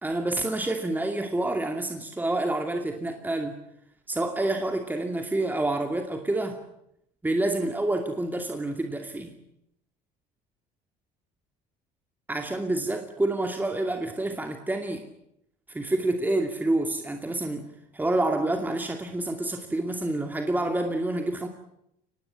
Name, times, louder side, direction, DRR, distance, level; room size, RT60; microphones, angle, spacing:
voice 1, 0.0-3.6 4.1-6.6 7.2-9.3 12.3-15.0 15.7-17.7 17.9-21.5, right 2 dB, 10° right, 5 dB, 2.5 m, -28 dB
24.0 x 19.5 x 9.8 m, 0.79 s
supercardioid pair, 105°, 18 cm